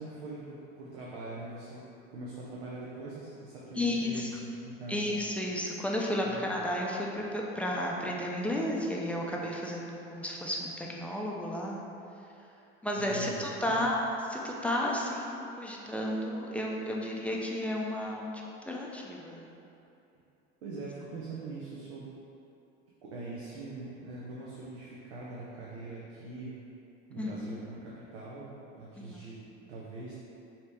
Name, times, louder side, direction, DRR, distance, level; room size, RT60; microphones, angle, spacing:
voice 1, 0.0-5.1 6.2-6.5 13.0-13.9 20.6-22.1 23.0-26.6 27.1-29.4 29.7-30.2, right 2 dB, 90° right, -6 dB, 0.7 m, -42 dB
voice 2, 3.7-4.3 4.9-11.9 12.8-18.3 18.7-19.5 27.2-27.3 29.0-29.2, left 1 dB, 5° left, -3 dB, 0.4 m, -32 dB
4.2 x 2.8 x 3.4 m, 2.7 s
hypercardioid pair, 85°, 32 cm